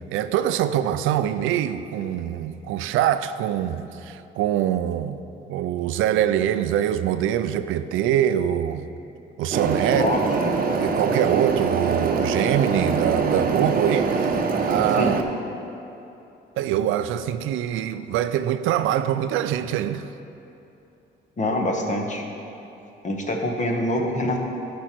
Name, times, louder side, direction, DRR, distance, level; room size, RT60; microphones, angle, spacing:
voice 1, 0.1-5.2 5.5-8.9 9.4-10.1 10.8-15.1 16.6-20.0, right 11 dB, 90° right, 0.4 m, -24 dB
sound 1, 9.5-15.2, right 4 dB, 45° right, 0.8 m, -24 dB
voice 2, 9.9-10.5 14.9-15.1 21.4-22.2 23.0-24.4, left 1 dB, 40° left, 1.3 m, -25 dB
13.0 x 5.2 x 4.5 m
cardioid pair, 90°, 20 cm